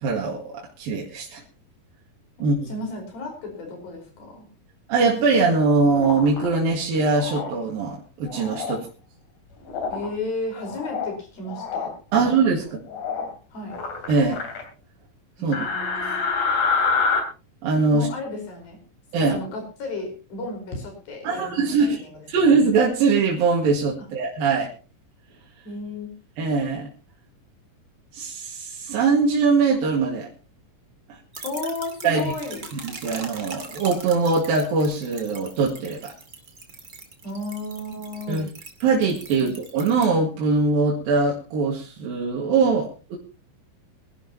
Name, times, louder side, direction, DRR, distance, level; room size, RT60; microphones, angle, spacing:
voice 1, 0.0-1.4 2.4-2.7 4.9-8.9 12.1-12.8 14.1-14.4 15.4-15.7 17.6-18.1 19.1-19.4 21.2-22.0 22.3-24.7 26.4-26.9 28.1-30.3 32.0-32.3 32.7-36.1 38.3-38.5 38.8-43.2, right 4 dB, 85° right, -1 dB, 3.7 m, -22 dB
voice 2, 2.7-4.5 9.9-11.9 12.2-12.3 12.6-12.8 13.5-13.8 15.4-16.2 17.9-18.8 19.3-22.3 25.6-26.1 31.4-32.6 37.2-38.4 39.4-39.5, left 2 dB, 90° left, 3 dB, 6.6 m, -33 dB
sound 1, 5.9-6.5 7.2-7.5 8.3-8.8 9.7-10.1 10.5-11.1 11.5-11.9 12.9-13.3 13.7-14.6 15.5-17.2, left 5 dB, 60° left, 4.3 m, -26 dB
sound 2, 31.3-40.1, right 4 dB, 30° right, 2.6 m, -41 dB
23.5 x 12.0 x 3.0 m, 0.33 s
omnidirectional pair, 4.0 m